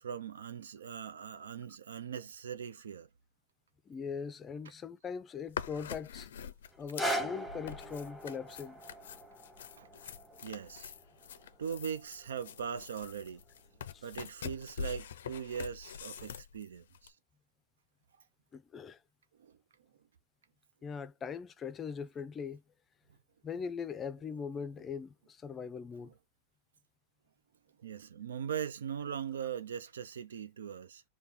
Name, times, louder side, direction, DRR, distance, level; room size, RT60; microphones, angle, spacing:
voice 1, 0.0-3.1 9.8-10.1 10.4-10.9 11.3-13.4 14.0-17.1 19.4-19.5 24.6-24.7 26.0-26.1 27.8-31.0, right 8 dB, 90° right, 0.5 m, -40 dB
voice 2, 3.9-6.3 6.8-8.8 10.3-10.4 13.9-14.1 18.5-19.0 20.8-22.6 23.4-26.1, left 6 dB, 25° left, 0.4 m, -41 dB
sound 1, 5.5-17.1, left 7 dB, 80° left, 0.4 m, -45 dB
sound 2, 6.7-12.8 13.5-13.6, right 1 dB, 5° right, 0.8 m, -41 dB
4.2 x 2.3 x 3.5 m
hypercardioid pair, 115°, 0 cm